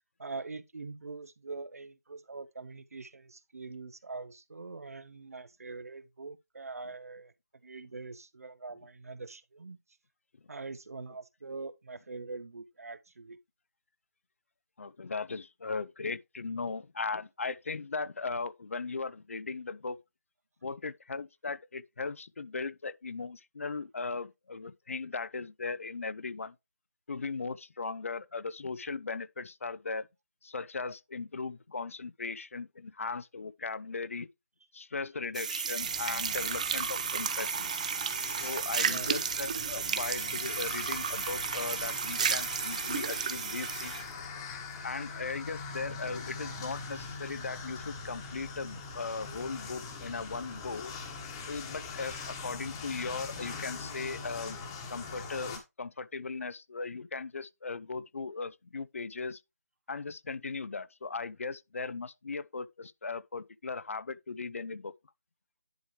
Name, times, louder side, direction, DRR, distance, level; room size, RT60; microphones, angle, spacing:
voice 1, 0.2-7.3 7.6-9.8 10.5-13.4 38.8-39.2, right 3 dB, 65° right, 0.7 m, -43 dB
voice 2, 14.8-20.0 20.6-26.5 27.1-30.1 30.4-34.3 34.7-37.7 38.4-43.9 44.8-50.9 51.5-54.6 54.9-59.4 59.9-64.9, left 4 dB, 55° left, 0.5 m, -38 dB
sound 1, 35.3-44.1, right 7 dB, 25° right, 0.5 m, -33 dB
sound 2, 35.8-55.6, left 4 dB, 15° left, 1.2 m, -42 dB
10.5 x 4.8 x 3.2 m
figure-of-eight pair, 160°, 9 cm